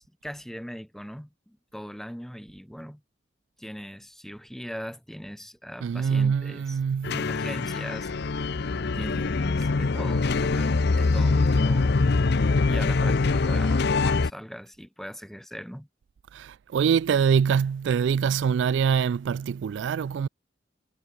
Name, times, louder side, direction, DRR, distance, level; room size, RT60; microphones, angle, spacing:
voice 1, 0.0-3.0 3.6-6.8 7.2-8.1 9.0-11.9 12.7-15.9, equal, ahead, 3.8 m, -40 dB
voice 2, 5.8-7.2 16.3-20.3, right 7 dB, 70° right, 0.3 m, -24 dB
sound 1, 7.0-14.3, left 3 dB, 65° left, 0.6 m, -23 dB
head